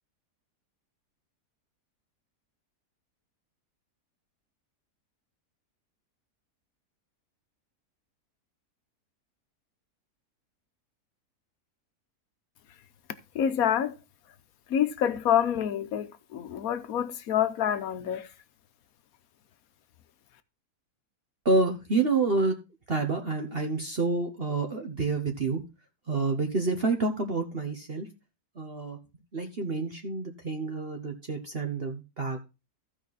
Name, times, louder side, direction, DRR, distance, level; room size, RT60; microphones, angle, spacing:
voice 1, 13.3-13.9 14.7-18.3, left 9 dB, 65° left, 1.2 m, -27 dB
voice 2, 21.4-22.5 22.9-25.6 26.1-28.1 28.6-29.0 29.3-32.4, right 3 dB, 40° right, 1.2 m, -28 dB
15.0 x 5.1 x 4.0 m
omnidirectional pair, 1.7 m